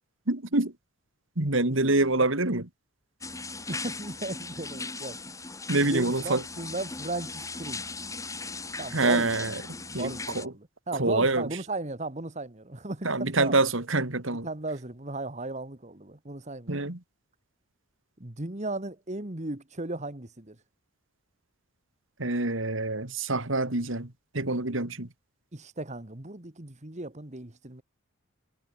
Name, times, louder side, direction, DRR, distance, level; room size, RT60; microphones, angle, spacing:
voice 1, 0.3-0.7 1.4-2.7 5.7-6.4 8.9-9.6 9.9-10.5 10.9-11.5 13.0-14.5 16.7-17.0 22.2-25.1, right 2 dB, 65° right, 2.5 m, -26 dB
sound 1, 3.2-10.5, left 3 dB, 15° left, 7.8 m, -38 dB
voice 2, 3.7-5.4 5.8-7.9 8.8-13.6 14.4-16.9 18.2-20.6 25.5-27.8, right 2 dB, 35° right, 1.8 m, -36 dB
head